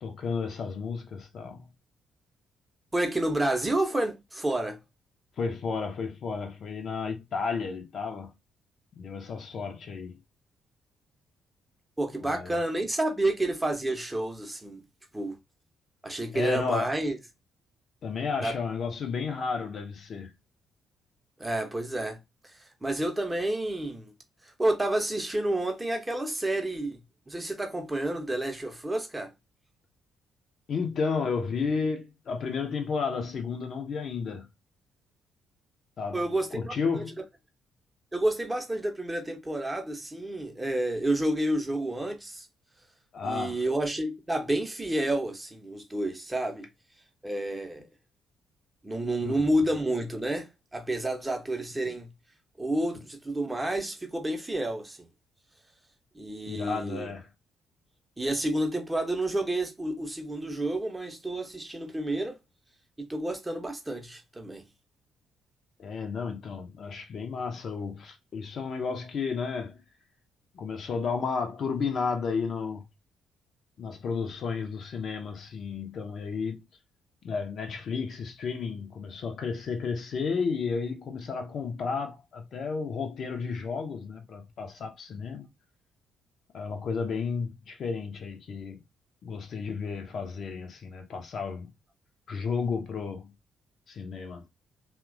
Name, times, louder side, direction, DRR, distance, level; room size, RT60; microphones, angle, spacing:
voice 1, 0.0-1.7 5.4-8.3 9.0-10.2 12.2-12.6 16.3-16.9 18.0-20.3 30.7-34.5 36.0-36.2 36.5-37.2 43.1-43.6 49.2-49.3 56.5-57.3 65.8-69.8 70.5-72.9 73.8-76.7 77.2-85.5 86.5-88.8 89.2-91.7 92.3-93.3 93.9-94.4, left 5 dB, 50° left, 0.5 m, -32 dB
voice 2, 2.9-4.8 12.0-14.8 15.1-15.4 16.0-17.2 18.4-18.6 21.4-22.2 22.4-24.1 24.4-27.0 27.3-29.3 36.1-37.0 38.1-42.5 43.2-46.7 47.2-47.9 48.8-52.1 52.6-55.1 56.1-57.1 58.2-62.4 63.0-64.6, right 1 dB, 15° right, 0.6 m, -30 dB
2.9 x 2.1 x 2.3 m
figure-of-eight pair, 40°, 0 cm